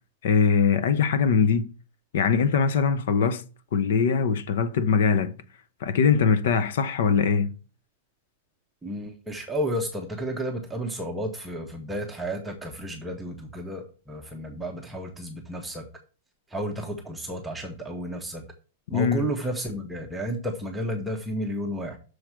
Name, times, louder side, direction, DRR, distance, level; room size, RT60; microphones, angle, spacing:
voice 1, 0.2-1.7 2.1-3.4 3.7-5.3 5.8-7.5 18.9-19.2, left 6 dB, 60° left, 0.7 m, -22 dB
voice 2, 8.8-15.8 16.5-18.4 18.9-22.0, equal, 5° right, 0.7 m, -32 dB
6.4 x 4.7 x 6.0 m
supercardioid pair, 175°, 0 cm